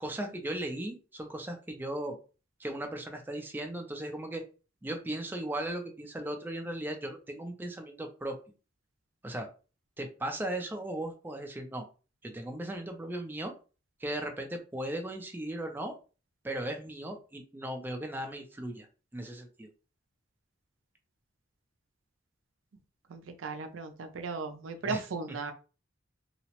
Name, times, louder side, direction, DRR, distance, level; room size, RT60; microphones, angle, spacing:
voice 1, 0.0-2.2 2.6-4.4 4.8-8.4 9.2-9.5 10.0-11.9 12.2-13.5 14.0-15.9 16.4-18.9 19.1-19.7 24.8-25.0, right 1 dB, 10° right, 3 dB, 0.4 m, -37 dB
voice 2, 23.1-25.5, right 4 dB, 75° right, 6 dB, 0.5 m, -36 dB
2.8 x 2.0 x 2.9 m, 0.34 s
head